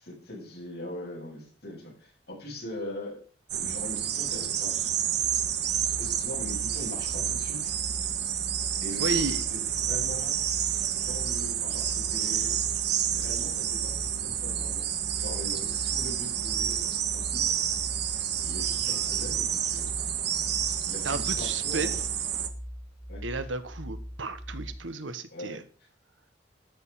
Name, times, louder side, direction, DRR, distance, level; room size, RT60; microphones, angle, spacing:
voice 1, 0.0-3.2 3.5-4.9 5.8-7.7 8.8-10.4 10.9-12.6 13.1-14.9 15.2-17.5 18.4-20.0 20.8-22.0 23.1-23.2 25.3-25.6, left 1 dB, 55° left, -3 dB, 7.9 m, -41 dB
sound 1, 3.5-22.5, right 9 dB, 60° right, 1.4 m, -29 dB
sound 2, 5.2-24.8, equal, 5° right, 1.2 m, -41 dB
voice 2, 9.0-9.4 21.0-21.9 23.2-25.6, right 3 dB, 85° right, 11 dB, 1.3 m, -33 dB
13.0 x 7.2 x 5.7 m, 0.40 s
head